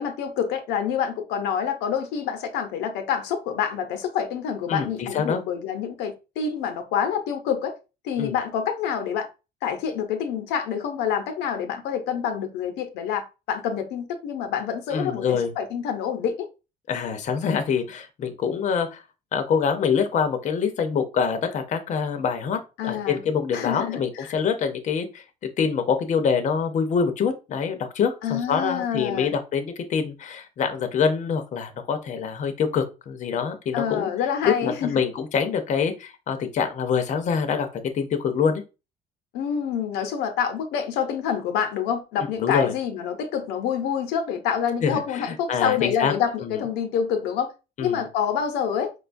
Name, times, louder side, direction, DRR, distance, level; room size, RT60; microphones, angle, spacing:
voice 1, 0.0-7.7 8.0-9.3 9.6-16.5 22.8-23.2 23.5-24.3 28.2-29.3 33.7-35.0 39.3-47.5 47.8-48.9, left 8 dB, 90° left, 0.7 m, -27 dB
voice 2, 4.7-5.4 8.2-8.3 14.9-15.5 16.9-19.0 19.3-25.2 25.6-34.1 34.4-37.7 37.9-38.6 42.4-42.7 44.8-46.1 46.4-46.6 47.8-48.0, left 6 dB, 45° left, 0.6 m, -25 dB
4.8 x 2.3 x 2.5 m
cardioid pair, 110°, 17 cm